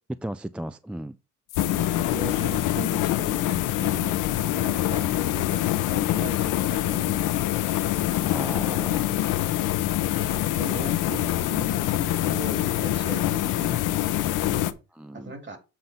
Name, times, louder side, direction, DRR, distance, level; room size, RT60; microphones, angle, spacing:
voice 1, 0.2-1.2 8.3-9.1 15.0-15.3, right 1 dB, 5° right, 0.3 m, -35 dB
sound 1, 1.5-14.7, left 13 dB, 85° left, 0.7 m, -25 dB
voice 2, 2.0-7.2 10.1-14.0 14.2-14.8 15.1-15.6, right 3 dB, 40° right, 2.7 m, -39 dB
7.8 x 3.9 x 5.5 m
cardioid pair, 90°, 30 cm